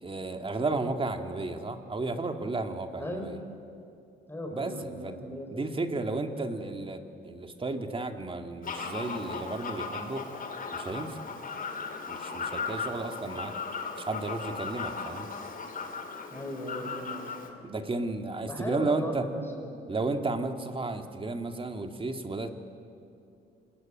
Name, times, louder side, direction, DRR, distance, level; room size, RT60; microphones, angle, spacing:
voice 1, 0.0-3.4 4.5-5.2 5.5-10.3 10.7-11.2 12.1-13.5 14.0-15.3 17.6-19.3 19.9-22.5, right 3 dB, 25° right, 6 dB, 2.1 m, -33 dB
voice 2, 4.3-5.6 16.3-17.8 18.5-19.9, equal, 10° left, 1 dB, 5.0 m, -38 dB
Fowl, 8.6-17.5, left 4 dB, 45° left, 2.7 m, -37 dB
26.0 x 19.5 x 9.0 m, 2.6 s
cardioid pair, 90°, 20 cm